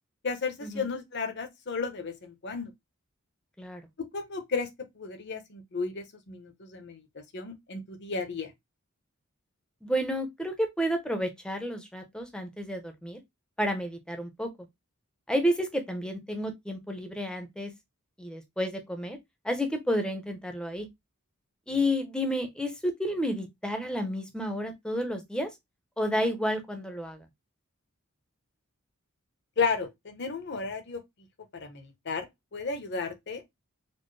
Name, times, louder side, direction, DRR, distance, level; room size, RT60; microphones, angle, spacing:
voice 1, 0.2-2.7 4.1-4.7 5.0-7.0 7.3-8.5 29.6-31.0 31.5-32.3 32.5-33.4, left 5 dB, 55° left, 0.8 m, -33 dB
voice 2, 9.8-13.2 13.6-14.5 15.3-17.7 18.2-19.2 19.4-20.9 21.7-25.5 26.0-27.2, equal, 5° left, 0.6 m, -31 dB
4.2 x 2.0 x 3.2 m
head